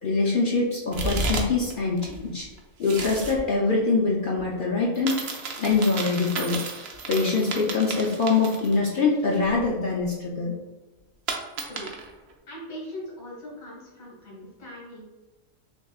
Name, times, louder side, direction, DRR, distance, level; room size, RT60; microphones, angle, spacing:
voice 1, 0.0-2.5 2.8-5.3 5.6-6.6 7.1-10.5, left 4 dB, 65° left, -3 dB, 0.5 m, -24 dB
sound 1, 0.9-1.7 2.0-3.4 4.9-9.0 9.3-9.4 11.3-12.1, right 3 dB, 60° right, 0.7 m, -32 dB
voice 2, 12.5-15.0, equal, 80° left, -5 dB, 1.7 m, -40 dB
6.2 x 2.2 x 2.3 m, 1.2 s
omnidirectional pair, 1.4 m